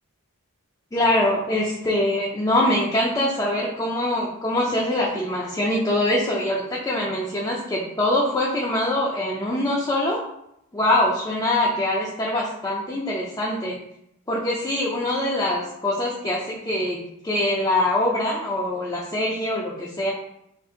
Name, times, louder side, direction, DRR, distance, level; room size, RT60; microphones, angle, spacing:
voice 1, 0.9-10.2 10.7-13.8 14.3-20.1, left 1 dB, 15° left, -5 dB, 0.4 m, -23 dB
2.6 x 2.4 x 3.7 m, 0.76 s
head